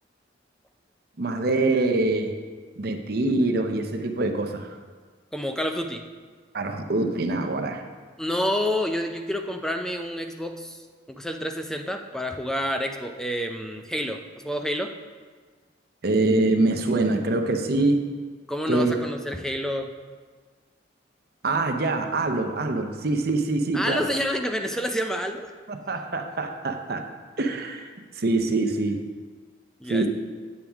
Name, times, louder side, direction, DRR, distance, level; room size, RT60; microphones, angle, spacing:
voice 1, 1.2-2.4 2.8-4.8 6.5-7.8 16.0-18.1 18.7-18.9 21.4-24.1 25.7-27.1 27.4-29.0 29.9-30.1, right 2 dB, 55° right, 5 dB, 0.7 m, -24 dB
voice 2, 5.3-6.0 8.2-10.8 11.1-14.9 18.5-19.9 23.7-25.5 29.8-30.1, equal, 5° left, 5 dB, 0.4 m, -28 dB
8.8 x 8.4 x 3.5 m, 1.5 s
head